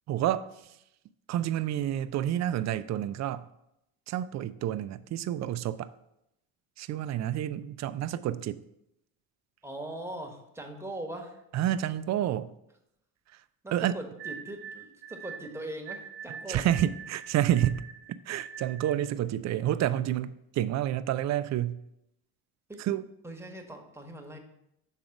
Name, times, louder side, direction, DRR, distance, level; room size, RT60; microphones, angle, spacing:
voice 1, 0.1-0.5 1.3-3.4 4.1-5.9 6.8-8.6 11.5-12.5 13.7-14.0 16.5-17.8 18.3-21.8 22.8-23.1, right 11 dB, 40° right, 0.4 m, -29 dB
voice 2, 9.6-11.4 13.6-16.7 22.7-22.8 23.2-24.4, right 1 dB, 5° right, 1.2 m, -40 dB
sound 1, 14.2-19.1, right 7 dB, 75° right, 0.8 m, -44 dB
6.4 x 3.8 x 5.8 m
supercardioid pair, 80°, 44 cm